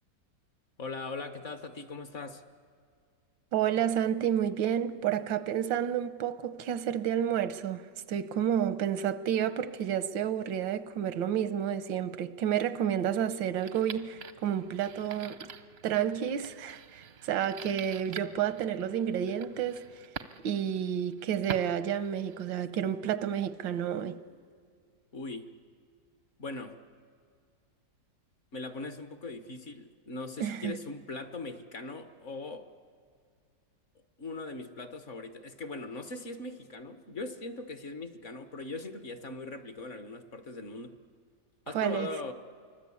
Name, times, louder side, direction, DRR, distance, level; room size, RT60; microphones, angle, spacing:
voice 1, 0.8-2.4 25.1-25.5 26.4-26.8 28.5-32.7 34.2-41.0 41.7-42.3, left 3 dB, 45° left, 1.3 m, -40 dB
voice 2, 3.5-7.8 8.1-15.5 15.8-19.8 20.4-24.2 30.4-30.8 41.7-42.1, right 9 dB, 90° right, 1.6 m, -30 dB
sound 1, 13.6-22.6, right 7 dB, 55° right, 0.7 m, -46 dB
26.5 x 24.0 x 8.5 m
omnidirectional pair, 2.0 m